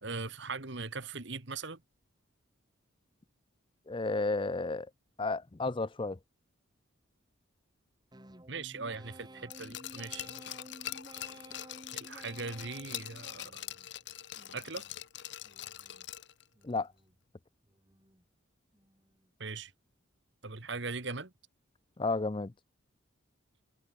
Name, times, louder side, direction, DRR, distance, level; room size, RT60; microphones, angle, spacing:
voice 1, 0.0-1.8 8.5-10.3 11.9-13.6 14.5-14.8 19.4-19.7 20.4-21.3, right 4 dB, 55° right, 1.7 m, -40 dB
voice 2, 3.9-4.9 5.2-6.2 16.6-16.9 22.0-22.5, left 3 dB, 25° left, 0.5 m, -32 dB
sound 1, 8.1-13.9 14.4-15.0 15.4-16.1 16.5-17.2 17.6-18.2 18.7-19.3, right 1 dB, 20° right, 2.4 m, -54 dB
Glass, 9.5-16.4 16.8-16.9, left 12 dB, 55° left, 1.0 m, -43 dB
head